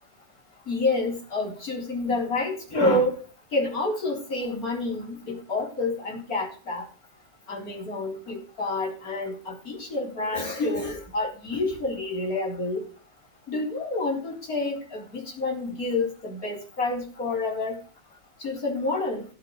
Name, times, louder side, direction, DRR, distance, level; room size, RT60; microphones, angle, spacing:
voice 1, 0.7-3.2 3.5-6.9 7.5-12.8 13.5-17.8 18.4-19.3, left 2 dB, 55° left, 0 dB, 4.7 m, -28 dB
18.0 x 7.5 x 4.8 m, 0.39 s
omnidirectional pair, 1.9 m